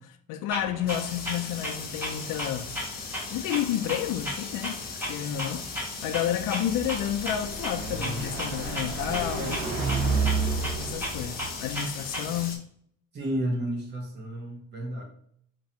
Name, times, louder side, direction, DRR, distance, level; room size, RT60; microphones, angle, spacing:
voice 1, 0.0-2.7 3.3-4.8 5.1-5.7 6.0-9.6 10.8-12.7, left 11 dB, 75° left, 0.5 m, -30 dB
Clock, 0.5-12.5, equal, 5° right, 1.0 m, -37 dB
sound 1, 0.9-12.6, left 5 dB, 30° left, 0.5 m, -39 dB
Car passing by, 6.4-11.8, right 4 dB, 85° right, 0.9 m, -31 dB
voice 2, 13.1-15.0, right 1 dB, 30° right, 0.8 m, -31 dB
2.9 x 2.6 x 4.2 m
cardioid pair, 170°, 33 cm